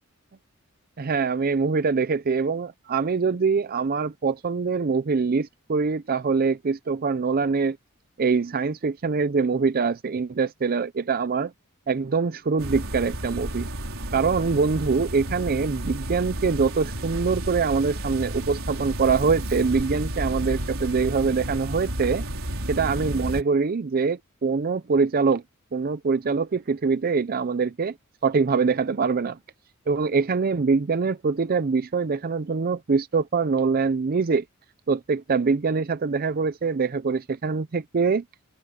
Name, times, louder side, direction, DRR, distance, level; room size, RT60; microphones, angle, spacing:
voice 1, 1.0-7.8 8.2-11.5 11.9-13.7 14.1-22.2 22.7-25.4 25.7-27.9 28.2-29.4 29.9-34.4 34.9-38.2, right 4 dB, 45° right, 0.5 m, -24 dB
sound 1, 12.6-23.4, right 1 dB, 70° right, 5.0 m, -31 dB
head